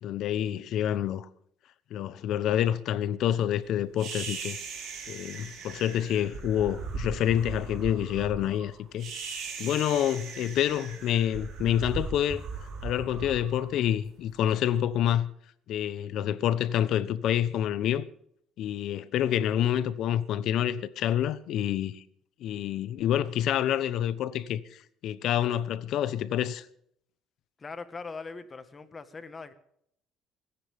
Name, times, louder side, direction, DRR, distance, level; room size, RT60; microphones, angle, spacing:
voice 1, 0.0-1.3 1.9-4.6 5.1-9.1 9.6-12.4 12.8-15.3 15.7-18.0 18.6-22.0 22.4-26.7, left 11 dB, 60° left, 1.0 m, -28 dB
sound 1, 4.0-14.3, right 4 dB, 55° right, 4.0 m, -39 dB
voice 2, 27.6-29.5, left 4 dB, 25° left, 1.5 m, -41 dB
28.5 x 10.0 x 3.6 m
cardioid pair, 140°, 0 cm